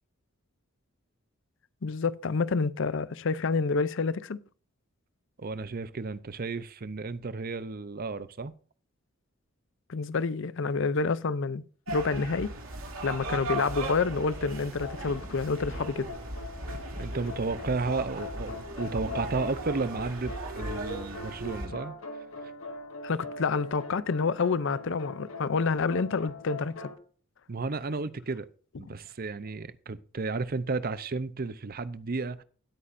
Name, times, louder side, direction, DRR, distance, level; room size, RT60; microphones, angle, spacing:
voice 1, 1.8-4.4 9.9-12.5 13.0-16.1 21.7-21.8 23.0-26.9, left 4 dB, 65° left, 0.5 m, -28 dB
voice 2, 5.4-8.5 16.7-22.0 27.5-28.5 28.8-32.4, right 3 dB, 45° right, 0.6 m, -33 dB
sound 1, 11.9-21.7, right 2 dB, 80° right, 2.8 m, -37 dB
sound 2, 13.5-14.3 14.8-27.0, left 3 dB, 90° left, 1.8 m, -42 dB
17.5 x 8.4 x 2.6 m
head